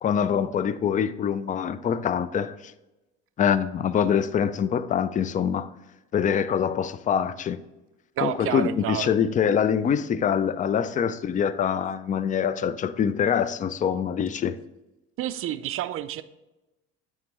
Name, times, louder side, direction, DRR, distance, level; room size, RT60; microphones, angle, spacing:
voice 1, 0.0-2.6 3.4-5.7 6.1-7.6 8.2-14.6, left 8 dB, 25° left, 0.3 m, -24 dB
voice 2, 8.2-9.1 15.2-16.2, right 12 dB, 45° right, 0.4 m, -29 dB
8.5 x 3.7 x 3.0 m
hypercardioid pair, 70°, 32 cm